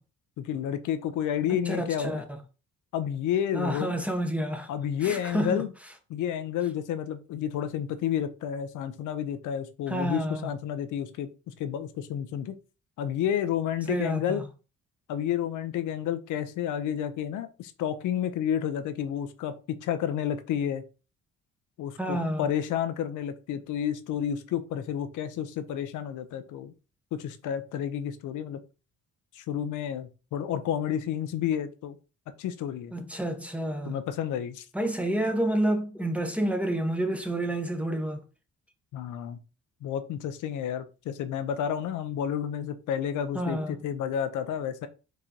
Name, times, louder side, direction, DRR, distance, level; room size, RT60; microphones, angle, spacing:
voice 1, 0.4-2.2 2.9-3.9 4.7-5.7 6.1-12.6 13.0-14.4 15.1-20.8 21.8-26.7 27.1-28.6 29.3-32.0 32.4-32.9 33.8-34.6 38.9-39.4 39.8-44.9, left 9 dB, 80° left, 0.6 m, -30 dB
voice 2, 1.7-2.2 3.5-4.7 5.0-5.6 9.9-10.5 13.9-14.4 22.0-22.4 32.9-34.0 34.7-38.2 43.3-43.7, right 1 dB, 5° right, 0.9 m, -29 dB
4.7 x 3.8 x 2.8 m
cardioid pair, 90°, 30 cm